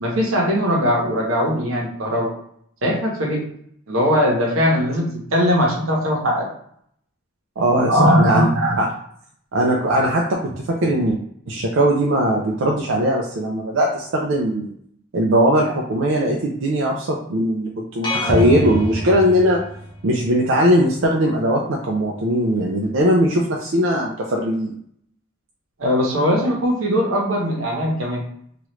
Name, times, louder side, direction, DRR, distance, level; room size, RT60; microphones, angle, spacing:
voice 1, 0.0-2.3 2.8-3.4 3.9-6.5 7.9-8.8 25.8-28.2, equal, 90° right, -1 dB, 0.9 m, -20 dB
voice 2, 7.6-8.5 8.8-8.9 9.5-11.2 11.5-14.7 15.1-19.6 20.0-24.7, equal, 70° right, -2 dB, 0.5 m, -19 dB
sound 1, 18.0-20.0, equal, 20° left, 0.6 m, -24 dB
3.0 x 2.4 x 3.0 m, 0.67 s
head